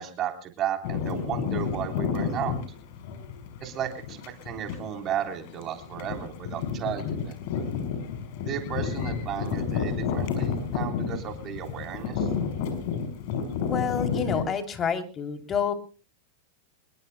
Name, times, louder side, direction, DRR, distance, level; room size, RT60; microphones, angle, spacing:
voice 1, 0.0-2.5 3.6-4.2 4.4-7.3 8.5-12.3, right 10 dB, 35° right, 4 dB, 3.6 m, -34 dB
Sound Walk - Dick Nichols Park, 0.8-14.4, left 6 dB, 55° left, 5.5 m, -31 dB
voice 2, 13.6-15.7, left 7 dB, 30° left, 6 dB, 3.2 m, -28 dB
26.0 x 22.0 x 2.2 m, 0.38 s
hypercardioid pair, 110°, 0 cm